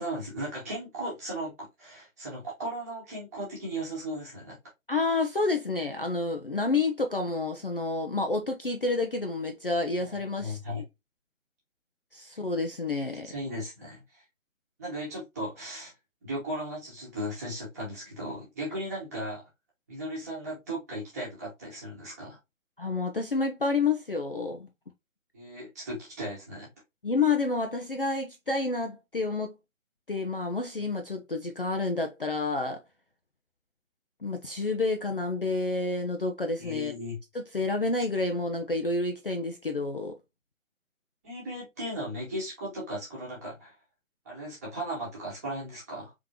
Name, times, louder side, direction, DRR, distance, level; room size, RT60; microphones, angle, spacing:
voice 1, 0.0-4.6 10.0-10.8 12.3-12.4 13.2-14.2 14.8-15.9 16.2-19.4 19.9-22.4 25.3-26.7 36.6-37.2 41.2-43.7 44.2-46.1, right 1 dB, 10° right, 1.2 m, -36 dB
voice 2, 4.9-10.8 12.1-13.3 22.8-24.7 27.0-29.5 30.1-32.8 34.2-36.9 37.5-40.2, left 3 dB, 45° left, 0.5 m, -29 dB
3.7 x 3.5 x 2.8 m
figure-of-eight pair, 165°, 41 cm